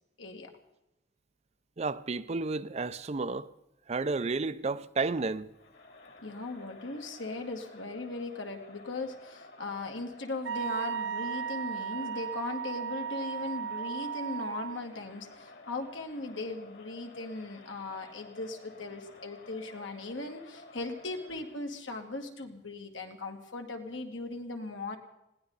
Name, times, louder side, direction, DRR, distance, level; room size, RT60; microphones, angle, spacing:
voice 1, 0.2-0.5 6.2-25.0, left 2 dB, 80° left, 2.3 m, -38 dB
voice 2, 1.8-3.5 3.9-5.5, right 3 dB, 35° right, 0.5 m, -31 dB
Crowd, 5.5-21.7, left 2 dB, 60° left, 2.7 m, -52 dB
Wind instrument woodwind instrument, 10.4-14.9, right 7 dB, 80° right, 0.6 m, -35 dB
21.0 x 17.5 x 4.0 m
head